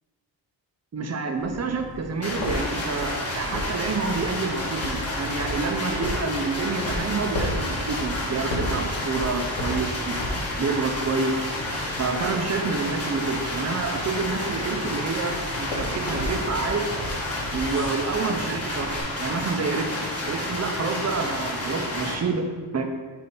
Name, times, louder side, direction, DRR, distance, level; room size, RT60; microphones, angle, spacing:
voice 1, 0.9-11.4 12.0-16.8 17.5-18.9 19.2-20.0 20.3-22.5 22.7-22.9, right 4 dB, 35° right, 4 dB, 0.7 m, -28 dB
sound 1, 1.4-19.0, left 1 dB, 80° left, 1.6 m, -35 dB
sound 2, 2.2-22.2, left 1 dB, 30° left, 1.4 m, -30 dB
7.8 x 2.8 x 5.4 m, 1.5 s
wide cardioid pair, 130°, 44 cm